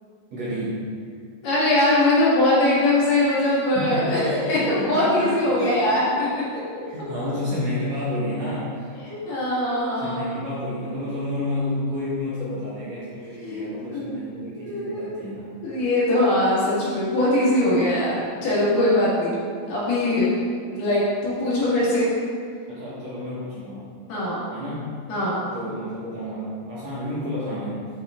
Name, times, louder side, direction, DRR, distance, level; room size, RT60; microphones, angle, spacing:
voice 1, 0.3-0.9 3.4-5.8 6.1-6.2 6.8-8.9 9.9-15.5 22.7-23.8 24.5-24.9 25.5-27.9, left 1 dB, 60° right, -9 dB, 2.0 m, -30 dB
voice 2, 1.4-6.4 9.0-10.3 13.4-14.2 14.5-15.2 15.6-19.4 19.7-20.4 20.7-22.1 24.1-24.5 25.1-25.4, left 1 dB, 65° left, -8 dB, 3.4 m, -22 dB
8.7 x 5.2 x 3.7 m, 2.2 s
omnidirectional pair, 4.3 m